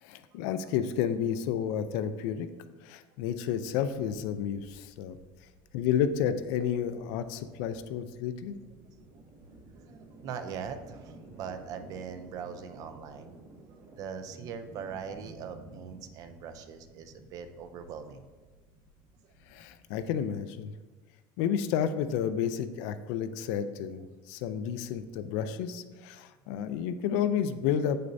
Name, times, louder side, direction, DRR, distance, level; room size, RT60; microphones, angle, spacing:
voice 1, 0.0-2.5 2.8-5.2 5.7-8.6 19.5-20.7 21.4-28.0, left 8 dB, 60° left, 11 dB, 0.4 m, -31 dB
sound 1, 4.9-20.6, right 2 dB, 55° right, 1.3 m, -53 dB
voice 2, 9.9-13.3 14.0-18.3 24.5-24.6, right 7 dB, 35° right, 9 dB, 0.4 m, -41 dB
7.9 x 6.5 x 2.6 m, 1.3 s
cardioid pair, 180°, 10 cm